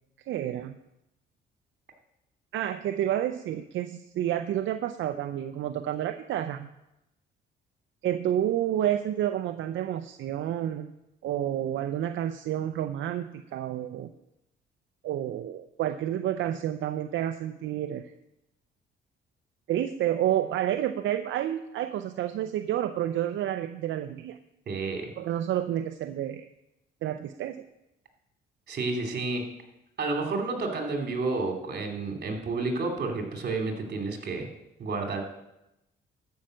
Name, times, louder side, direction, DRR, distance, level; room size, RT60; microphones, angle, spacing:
voice 1, 0.3-0.8 2.5-6.7 8.0-10.9 11.2-14.1 15.0-18.1 19.7-24.4 25.2-26.4 27.0-27.6, right 11 dB, 75° right, 8 dB, 0.6 m, -29 dB
voice 2, 24.7-25.1 28.7-29.5 30.0-34.5 34.8-35.2, right 3 dB, 55° right, 3 dB, 2.6 m, -30 dB
12.5 x 5.7 x 7.6 m, 0.89 s
cardioid pair, 90°, 20 cm